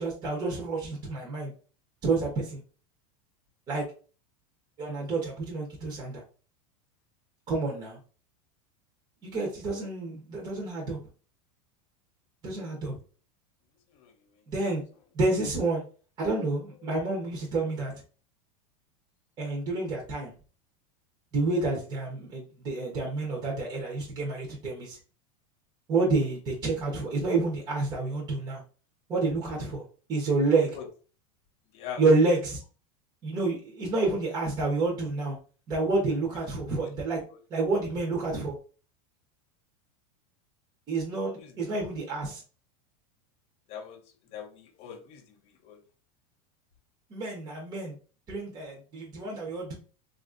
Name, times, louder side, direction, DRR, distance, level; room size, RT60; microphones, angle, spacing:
voice 1, 0.0-1.5 2.0-2.6 3.7-3.8 4.8-6.2 7.5-8.0 9.2-11.0 12.4-13.0 14.5-14.8 15.1-15.8 16.2-17.9 19.4-20.3 21.3-25.0 25.9-28.6 29.1-29.8 30.1-30.8 32.0-32.6 33.2-35.4 35.7-37.2 37.5-38.5 40.9-42.4 47.1-47.9 48.3-49.7, right 3 dB, 20° right, 0.7 m, -29 dB
voice 2, 16.8-17.2 30.7-30.9 31.7-32.0 41.4-41.5 42.2-42.3 43.7-45.8, left 8 dB, 35° left, 0.5 m, -43 dB
3.4 x 2.4 x 2.4 m
supercardioid pair, 160°, 19 cm